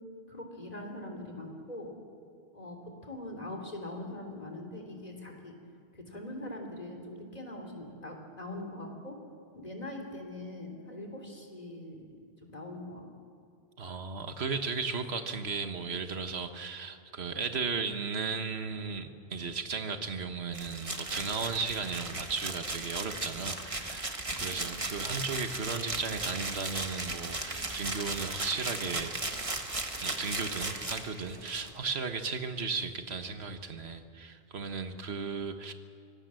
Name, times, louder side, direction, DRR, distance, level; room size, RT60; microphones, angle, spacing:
voice 1, 0.3-1.9 2.5-2.8 3.0-5.5 5.9-9.1 9.5-12.0 12.4-13.0 24.5-24.7, left 1 dB, 40° left, 2 dB, 3.3 m, -42 dB
voice 2, 13.8-29.1 30.0-35.7, right 5 dB, 80° right, 8 dB, 1.6 m, -35 dB
sound 1, 20.5-31.7, right 2 dB, 30° right, 1.5 m, -36 dB
25.0 x 18.5 x 7.7 m, 2.3 s
omnidirectional pair, 1.1 m